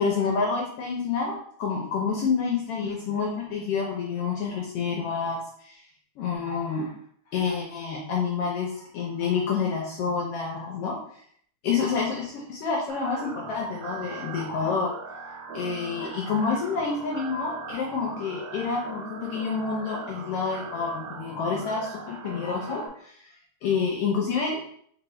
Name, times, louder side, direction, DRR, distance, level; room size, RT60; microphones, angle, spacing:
voice 1, 0.0-5.8 6.2-6.9 7.3-11.0 11.6-14.9 15.5-23.2 23.6-24.6, left 5 dB, 80° left, -2 dB, 1.3 m, -28 dB
sound 1, 12.9-22.9, right 3 dB, 80° right, 1.4 m, -40 dB
4.5 x 2.7 x 3.1 m, 0.63 s
omnidirectional pair, 3.4 m